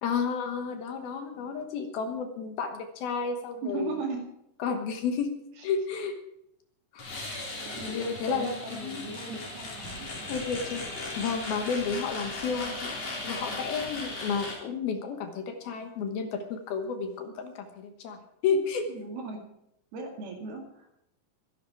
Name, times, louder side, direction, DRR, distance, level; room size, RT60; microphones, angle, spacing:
voice 1, 0.0-4.0 4.6-5.3 5.6-6.1 6.9-7.1 7.9-9.0 10.3-10.8 11.1-12.9 13.2-18.9, left 5 dB, 65° left, 6 dB, 3.0 m, -31 dB
voice 2, 3.6-4.2 5.6-5.7 7.7-10.1 18.9-19.4 19.9-20.9, right 3 dB, 65° right, 3 dB, 4.0 m, -37 dB
sound 1, 7.0-14.5, left 2 dB, 35° left, 4.6 m, -37 dB
23.5 x 11.0 x 4.6 m, 0.79 s
omnidirectional pair, 5.0 m